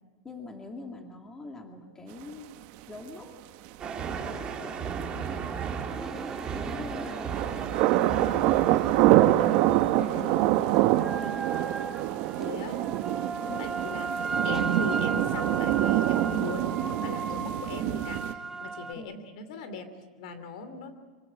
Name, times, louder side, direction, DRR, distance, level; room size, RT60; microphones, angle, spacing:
voice 1, 0.2-2.5 2.9-3.4 3.8-5.9 6.5-7.4 7.9-8.7 9.0-9.7 10.2-11.5 13.4-13.6 19.0-19.1, left 2 dB, 15° left, 3 dB, 2.4 m, -43 dB
sound 1, 3.8-10.9, right 6 dB, 25° right, 2.4 m, -36 dB
sound 2, 5.9-9.6 9.9-18.9, right 4 dB, 10° right, 1.1 m, -36 dB
sound 3, 7.2-18.3, right 15 dB, 50° right, 0.9 m, -25 dB
voice 2, 10.0-10.3 12.4-12.8 13.6-14.1 14.4-20.9, left 3 dB, 70° left, 10 dB, 2.8 m, -38 dB
25.5 x 17.0 x 8.8 m, 1.5 s
supercardioid pair, 145°, 4 cm